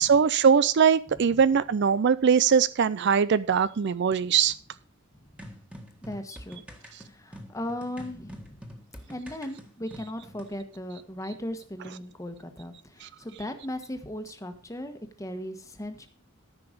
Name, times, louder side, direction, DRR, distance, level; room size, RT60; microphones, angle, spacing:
voice 1, 0.0-4.5 13.0-13.1, right 6 dB, 55° right, 17 dB, 0.4 m, -21 dB
sound 1, 5.4-10.5, equal, 5° right, 1.6 m, -46 dB
voice 2, 6.0-6.6 7.0-8.6 9.1-16.1, left 1 dB, 15° left, 7 dB, 1.3 m, -37 dB
13.5 x 5.9 x 5.1 m, 0.40 s
head